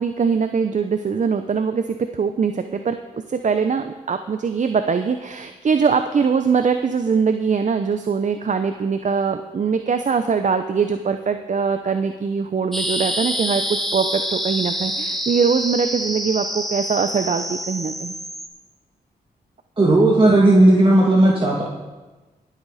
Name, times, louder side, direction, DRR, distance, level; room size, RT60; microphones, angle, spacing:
voice 1, 0.0-18.1, right 5 dB, 50° right, 8 dB, 0.7 m, -22 dB
sound 1, 12.7-18.5, equal, ahead, 2.3 m, -27 dB
voice 2, 19.8-21.6, right 1 dB, 30° right, -4 dB, 2.4 m, -14 dB
21.5 x 8.2 x 4.2 m, 1.2 s
cardioid pair, 55°, 17 cm